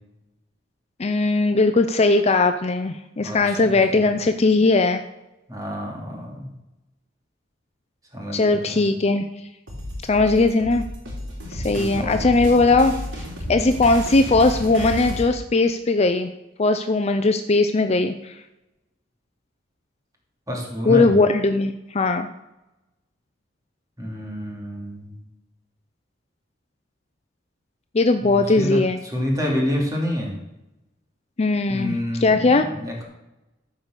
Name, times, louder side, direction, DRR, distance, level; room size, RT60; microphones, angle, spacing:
voice 1, 1.0-5.0 8.3-9.3 10.1-10.8 11.5-16.3 16.6-18.4 20.8-22.3 27.9-29.0 31.4-32.6, left 3 dB, 35° left, 8 dB, 0.5 m, -19 dB
voice 2, 3.2-4.0 5.5-6.5 8.1-8.9 11.7-12.2 20.5-21.1 24.0-25.2 28.2-28.8 29.1-30.3 31.7-33.0, left 1 dB, 20° right, -1 dB, 2.9 m, -28 dB
sound 1, 9.7-15.3, equal, 75° right, 3.7 m, -32 dB
14.5 x 5.3 x 6.6 m, 0.96 s
head